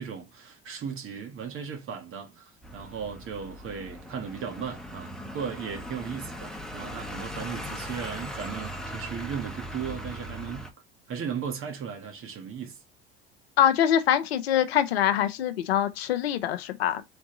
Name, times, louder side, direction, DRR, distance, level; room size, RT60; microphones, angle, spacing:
voice 1, 0.0-10.7 11.1-12.8, right 7 dB, 40° right, 1.7 m, -36 dB
sound 1, 2.6-10.7, equal, ahead, 1.1 m, -39 dB
voice 2, 13.6-17.0, left 10 dB, 80° left, 0.7 m, -24 dB
3.9 x 3.5 x 3.8 m
hypercardioid pair, 75°, 31 cm